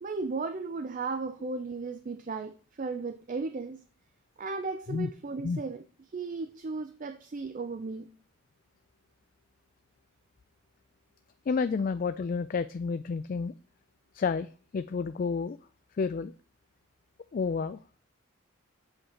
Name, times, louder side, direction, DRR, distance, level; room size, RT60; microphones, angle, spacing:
voice 1, 0.0-3.8 4.4-5.8 6.1-8.1, right 4 dB, 40° right, 0.4 m, -35 dB
voice 2, 11.5-13.5 14.1-15.6 16.0-16.3 17.3-18.0, left 5 dB, 40° left, 0.3 m, -30 dB
7.8 x 6.6 x 4.3 m
head